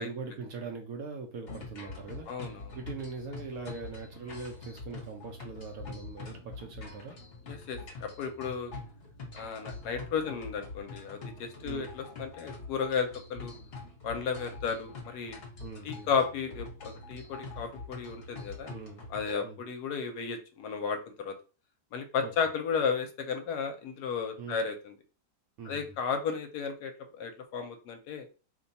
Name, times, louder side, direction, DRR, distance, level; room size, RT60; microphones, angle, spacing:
voice 1, 0.0-7.2 11.6-12.0 15.6-16.1 18.7-19.1 19.4-19.6 22.2-22.3 24.4-24.6 25.6-26.0, right 4 dB, 70° right, 2 dB, 0.9 m, -42 dB
sound 1, 1.5-19.3, left 3 dB, 45° left, 0.9 m, -45 dB
voice 2, 2.3-2.8 7.5-8.7 9.3-13.5 14.0-15.4 15.8-18.7 19.1-21.3 21.9-25.0 25.7-28.3, left 6 dB, 75° left, 6 dB, 1.1 m, -34 dB
2.9 x 2.2 x 3.9 m, 0.35 s
omnidirectional pair, 1.8 m